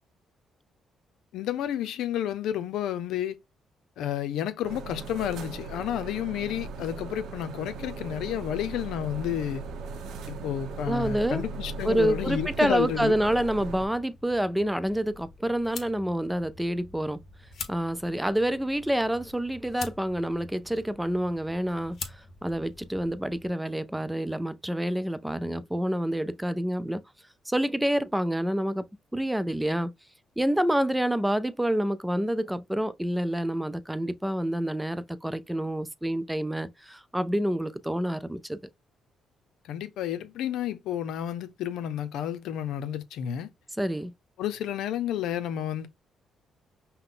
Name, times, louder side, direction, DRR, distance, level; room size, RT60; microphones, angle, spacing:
voice 1, 1.3-3.4 4.0-9.6 10.3-13.2 39.7-43.5 44.4-45.9, left 10 dB, 85° left, 0.7 m, -31 dB
sound 1, 4.6-13.9, right 4 dB, 80° right, 0.8 m, -38 dB
voice 2, 10.9-11.4 11.8-17.2 17.7-22.0 22.4-27.0 27.5-28.8 29.1-29.9 30.4-38.6 43.8-44.1, right 1 dB, 5° right, 0.5 m, -28 dB
sound 2, 13.1-23.5, left 4 dB, 60° left, 1.2 m, -45 dB
5.6 x 2.2 x 3.8 m
cardioid pair, 90°, 0 cm